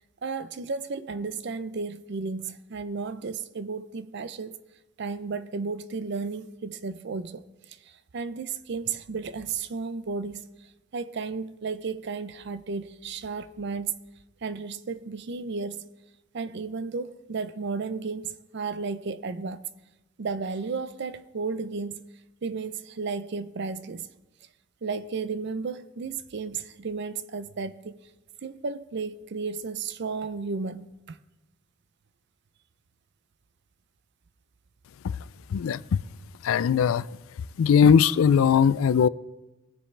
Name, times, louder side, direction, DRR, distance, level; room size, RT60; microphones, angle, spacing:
voice 1, 0.2-4.6 5.0-7.4 7.9-10.5 10.9-14.0 14.4-15.9 16.3-19.6 20.2-22.1 22.4-24.1 24.8-28.0 28.4-31.2, right 4 dB, 55° right, 0.5 m, -33 dB
voice 2, 35.5-36.0 36.4-37.1 37.6-39.1, left 7 dB, 85° left, 0.3 m, -20 dB
20.0 x 7.1 x 3.3 m
head